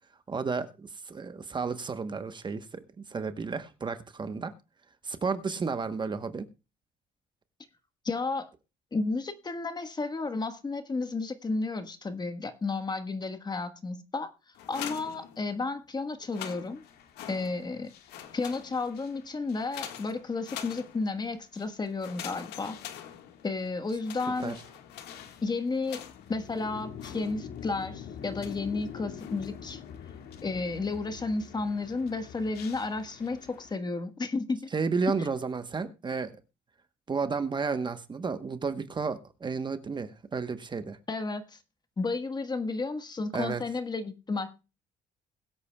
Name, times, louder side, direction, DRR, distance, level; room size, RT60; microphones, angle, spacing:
voice 1, 0.3-2.8 3.1-4.5 5.0-6.5 24.4-24.5 34.7-36.3 37.1-41.0 43.3-43.6, right 4 dB, 25° right, 1.1 m, -32 dB
voice 2, 8.0-8.5 8.9-14.3 14.7-16.8 17.3-17.9 18.3-22.8 23.4-24.6 25.4-29.8 30.4-34.7 41.1-41.6 42.0-44.6, left 3 dB, 25° left, 1.4 m, -32 dB
sound 1, 14.6-15.8 16.2-17.8 18.1-19.1 19.7-21.3 22.0-23.6 24.0-26.4 27.0-27.7 28.4-28.8 29.2-29.7, left 10 dB, 85° left, 1.6 m, -44 dB
sound 2, 16.5-33.8, left 8 dB, 70° left, 2.0 m, -47 dB
21.5 x 8.3 x 2.3 m
cardioid pair, 110°, 17 cm